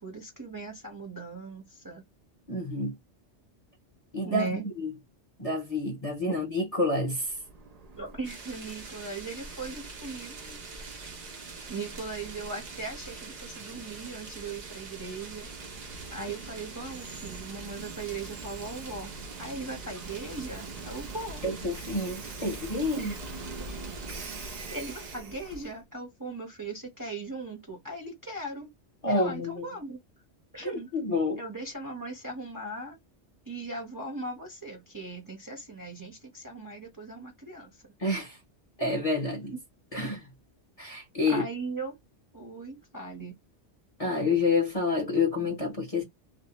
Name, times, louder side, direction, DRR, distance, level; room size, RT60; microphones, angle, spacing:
voice 1, 0.0-2.0 4.3-4.6 8.0-10.6 11.7-15.5 16.1-19.1 19.4-21.4 23.0-23.2 24.7-28.7 29.1-30.0 30.5-30.9 31.4-33.0 33.5-37.7 41.3-41.9 42.3-43.4, right 3 dB, 20° right, 0.7 m, -38 dB
voice 2, 2.5-2.9 4.1-4.9 5.4-7.3 21.4-23.1 23.7-23.8 29.0-29.8 30.6-31.4 38.0-38.4 38.8-39.6 39.9-40.2 40.8-41.5 44.0-46.0, left 2 dB, 35° left, 0.7 m, -28 dB
Train, 7.0-25.8, right 3 dB, 55° right, 0.4 m, -44 dB
sound 1, 8.2-25.2, right 4 dB, 70° right, 1.2 m, -46 dB
2.6 x 2.0 x 2.9 m
omnidirectional pair, 1.2 m